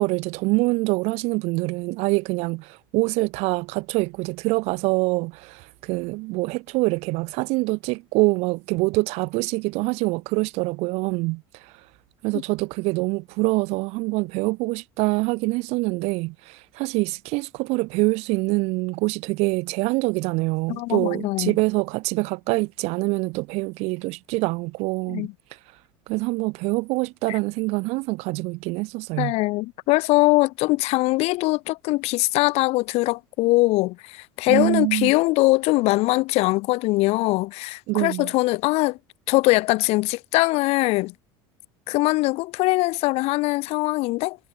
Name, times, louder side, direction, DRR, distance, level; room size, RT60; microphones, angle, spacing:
voice 1, 0.0-11.4 12.2-25.3 26.1-29.3 34.5-35.1 37.9-38.3, right 24 dB, 70° right, 6.7 m, -25 dB
voice 2, 20.7-21.5 25.1-25.3 27.3-27.4 29.2-39.0 39.3-41.1 41.9-44.4, left 21 dB, 65° left, 5.2 m, -22 dB
supercardioid pair, 105°, 11 cm